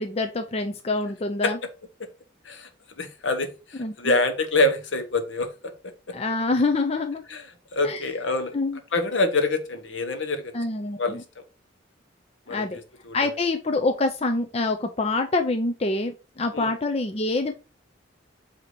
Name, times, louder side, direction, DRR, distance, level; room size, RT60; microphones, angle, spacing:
voice 1, 0.0-1.6 3.8-4.2 6.1-7.2 7.8-8.0 8.5-8.8 10.5-11.2 12.5-12.8 13.1-17.5, left 2 dB, 30° left, 5 dB, 0.5 m, -26 dB
voice 2, 3.0-5.5 7.3-7.4 7.7-8.5 8.9-10.5 11.0-11.2 12.5-12.7 13.0-13.3 16.5-16.7, left 2 dB, 70° left, 7 dB, 1.1 m, -25 dB
8.0 x 2.9 x 4.4 m, 0.32 s
head